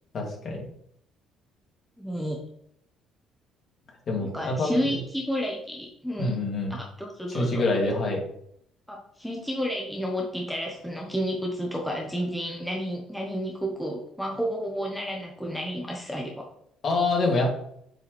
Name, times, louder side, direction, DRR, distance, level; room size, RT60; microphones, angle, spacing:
voice 1, 0.1-0.6 4.1-4.7 6.2-6.7 7.3-8.2 16.8-17.5, left 2 dB, 45° left, -1 dB, 2.5 m, -26 dB
voice 2, 2.0-2.4 4.2-6.4 6.7-7.6 8.9-16.5, equal, ahead, -1 dB, 1.0 m, -31 dB
7.5 x 4.6 x 3.3 m, 0.69 s
cardioid pair, 120°, 0 cm